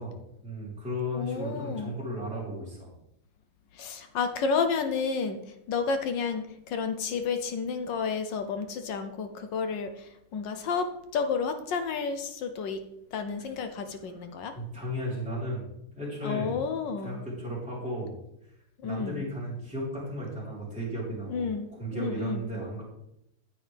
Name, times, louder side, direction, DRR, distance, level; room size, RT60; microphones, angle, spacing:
voice 1, 0.0-2.9 13.4-13.5 14.1-14.2 14.5-15.6 15.9-16.6 17.0-18.2 18.8-22.8, equal, 5° right, -7 dB, 3.9 m, -35 dB
voice 2, 1.1-1.9 3.7-5.4 5.7-12.8 13.1-14.5 16.2-17.2 18.8-19.2 21.3-22.4, left 5 dB, 65° left, 8 dB, 1.3 m, -31 dB
9.6 x 8.5 x 3.4 m, 0.80 s
omnidirectional pair, 2.3 m